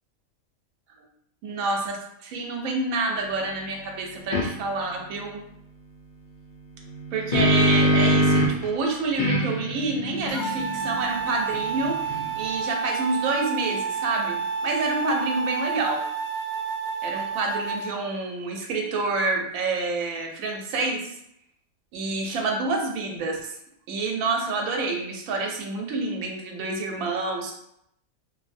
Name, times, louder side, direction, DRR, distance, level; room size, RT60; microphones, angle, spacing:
voice 1, 1.4-5.4 7.1-12.0 12.4-16.0 17.0-21.1 21.9-23.6 23.9-27.5, right 3 dB, 80° right, 1 dB, 1.0 m, -28 dB
sound 1, 4.3-4.5 6.9-8.7 9.2-12.5, equal, 60° left, 0.5 m, -24 dB
sound 2, 10.3-17.9, right 6 dB, 80° left, 1.0 m, -29 dB
2.7 x 2.5 x 2.5 m, 0.77 s
omnidirectional pair, 1.5 m